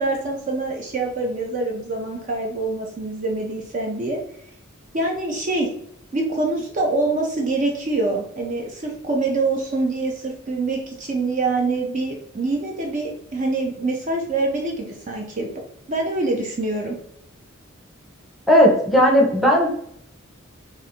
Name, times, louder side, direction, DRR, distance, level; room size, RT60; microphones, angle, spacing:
voice 1, 0.0-4.2 4.9-5.7 6.1-15.5 15.9-17.0, right 2 dB, 35° right, 0 dB, 0.4 m, -25 dB
voice 2, 18.5-19.7, equal, ahead, -2 dB, 0.7 m, -15 dB
2.5 x 2.5 x 4.1 m, 0.70 s
head